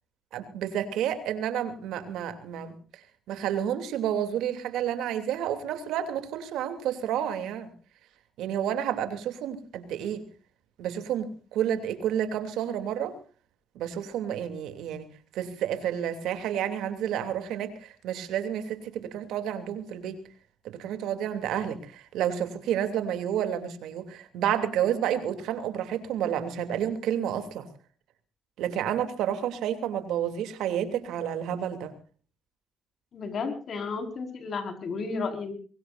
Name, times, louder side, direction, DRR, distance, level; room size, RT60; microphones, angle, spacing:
voice 1, 0.3-2.8 3.3-7.7 8.4-10.2 10.8-13.2 13.7-15.0 15.3-20.2 20.6-27.7 28.6-31.9, right 10 dB, 90° right, 8 dB, 2.9 m, -30 dB
voice 2, 33.1-35.5, left 4 dB, 55° left, 6 dB, 5.1 m, -33 dB
23.5 x 22.0 x 2.6 m, 0.40 s
cardioid pair, 90°, 0 cm